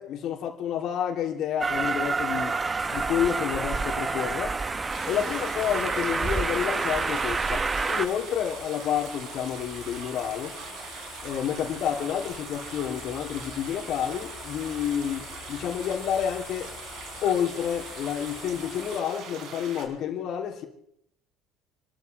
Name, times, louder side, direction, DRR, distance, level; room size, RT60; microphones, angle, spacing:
voice 1, 0.0-2.6 2.9-4.6 5.1-10.6 11.2-16.7 17.2-20.7, left 9 dB, 60° left, 3.2 m, -29 dB
Train, 1.6-8.1, right 4 dB, 25° right, 0.9 m, -28 dB
sound 1, 2.8-19.0, left 7 dB, 45° left, 1.4 m, -46 dB
sound 2, 4.9-19.9, right 5 dB, 65° right, 4.0 m, -42 dB
29.0 x 13.0 x 3.5 m
supercardioid pair, 90°, 0 cm